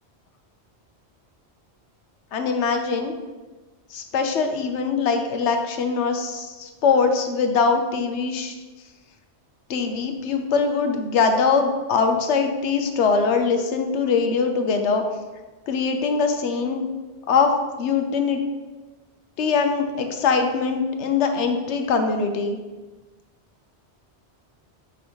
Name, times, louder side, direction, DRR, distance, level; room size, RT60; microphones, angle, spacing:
voice 1, 2.3-3.1 3.9-8.5 9.7-15.0 15.7-16.8 17.3-18.4 19.4-22.6, left 5 dB, 85° left, 6 dB, 1.0 m, -22 dB
5.2 x 4.9 x 4.4 m, 1.2 s
omnidirectional pair, 1.1 m